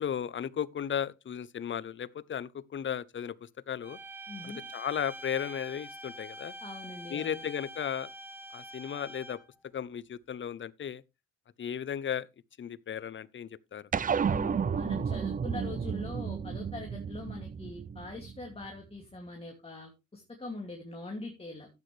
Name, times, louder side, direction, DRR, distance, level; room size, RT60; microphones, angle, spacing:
voice 1, 0.0-4.0 4.4-6.5 7.1-8.1 8.5-9.4 9.7-11.0 11.6-12.3 12.6-13.8, left 8 dB, 40° left, 0.7 m, -35 dB
sound 1, 3.8-9.6, right 1 dB, 5° right, 2.0 m, -45 dB
voice 2, 4.3-4.6 6.6-7.4 14.3-21.7, left 2 dB, 20° left, 2.4 m, -42 dB
sound 2, 13.9-18.7, right 7 dB, 30° right, 0.5 m, -32 dB
12.0 x 8.7 x 3.2 m
cardioid pair, 90°, 30 cm